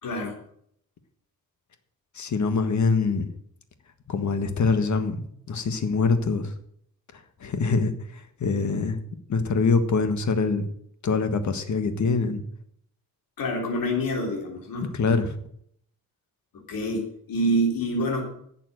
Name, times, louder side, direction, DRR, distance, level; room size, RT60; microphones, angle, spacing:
voice 1, 0.0-0.4 13.4-14.9 16.7-18.2, equal, 70° left, 0 dB, 3.6 m, -26 dB
voice 2, 2.1-3.3 4.1-6.5 7.1-9.0 9.3-10.7 11.0-12.4 14.9-15.3, left 4 dB, 55° left, 9 dB, 1.6 m, -24 dB
11.5 x 7.4 x 7.7 m, 0.67 s
wide cardioid pair, 145°, 35 cm